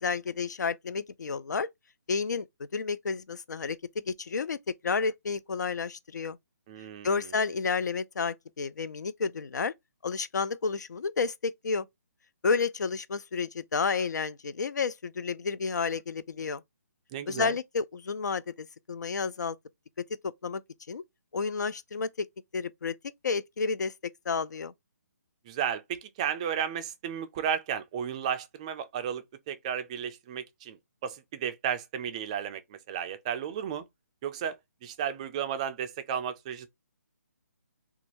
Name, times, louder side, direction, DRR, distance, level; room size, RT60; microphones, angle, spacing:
voice 1, 0.0-1.7 2.1-2.5 2.7-3.8 4.1-6.4 7.0-9.7 10.0-11.9 12.4-16.6 17.3-19.6 20.2-20.6 20.9-21.0 21.3-22.3 22.5-22.9 23.2-23.9 24.3-24.7, left 5 dB, 80° left, 0.4 m, -31 dB
voice 2, 6.7-7.3 17.1-17.6 25.5-33.8 34.2-36.7, right 8 dB, 20° right, 0.3 m, -33 dB
2.6 x 2.3 x 2.9 m
hypercardioid pair, 150°, 9 cm